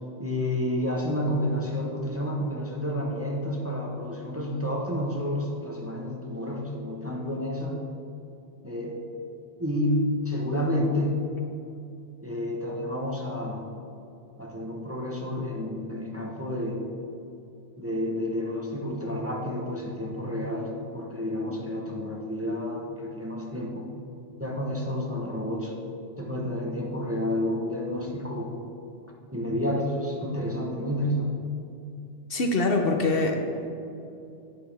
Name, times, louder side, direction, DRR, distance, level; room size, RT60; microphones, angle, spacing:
voice 1, 0.2-7.8 8.6-9.0 9.6-11.2 12.2-13.6 14.4-16.8 17.8-23.9 24.4-25.7 26.2-28.5 29.3-31.3, left 1 dB, 15° right, -1 dB, 1.0 m, -30 dB
voice 2, 32.3-33.4, left 3 dB, 60° left, 3 dB, 1.0 m, -23 dB
10.5 x 9.9 x 3.4 m, 2.7 s
omnidirectional pair, 1.2 m